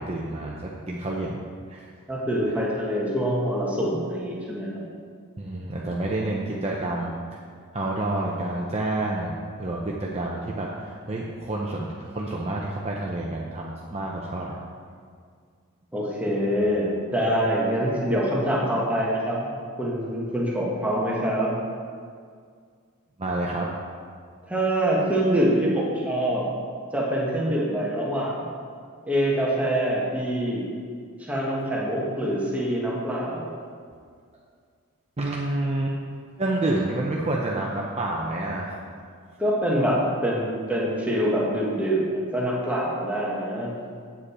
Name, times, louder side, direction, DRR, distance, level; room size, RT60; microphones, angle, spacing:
voice 1, 0.0-1.4 1.7-1.9 5.4-7.2 7.7-9.3 9.6-14.5 23.2-23.7 35.2-35.9 36.4-38.8, right 2 dB, 30° right, -3 dB, 0.6 m, -28 dB
voice 2, 2.1-4.8 15.9-19.4 19.8-21.5 24.5-26.5 26.9-28.5 29.1-30.7 31.2-33.5 39.4-43.7, equal, 5° right, -5 dB, 1.3 m, -25 dB
8.3 x 7.6 x 4.3 m, 2.1 s
head